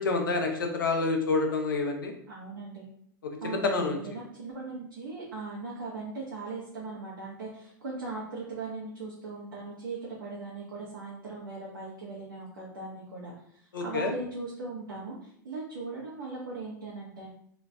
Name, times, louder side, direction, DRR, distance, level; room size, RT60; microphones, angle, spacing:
voice 1, 0.0-2.1 3.2-4.0 13.7-14.1, left 3 dB, 80° left, 3 dB, 0.7 m, -28 dB
voice 2, 2.3-2.9 3.4-17.3, right 3 dB, 80° right, -5 dB, 1.0 m, -39 dB
3.0 x 2.5 x 3.3 m, 0.67 s
hypercardioid pair, 95°, 11 cm